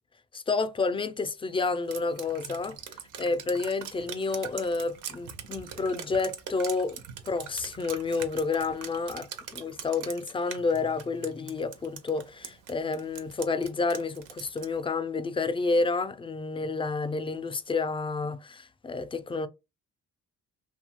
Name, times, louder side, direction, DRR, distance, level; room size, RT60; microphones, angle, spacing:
voice 1, 0.3-2.8 3.2-9.3 9.5-19.5, left 4 dB, 20° left, 0.3 m, -30 dB
Drip, 1.9-14.8, right 8 dB, 85° right, 0.6 m, -42 dB
2.7 x 2.2 x 2.8 m
cardioid pair, 90°, 30 cm